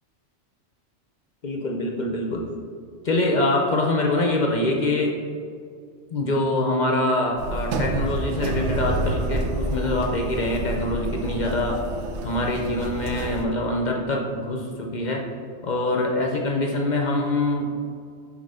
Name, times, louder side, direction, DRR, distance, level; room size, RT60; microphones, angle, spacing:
voice 1, 1.4-2.5 3.0-5.2 6.1-11.8 12.2-15.2 15.6-17.7, left 2 dB, 50° left, 0 dB, 0.6 m, -24 dB
sound 1, 7.4-13.5, right 2 dB, 75° right, 0.9 m, -28 dB
7.5 x 3.0 x 5.4 m, 2.2 s
omnidirectional pair, 1.2 m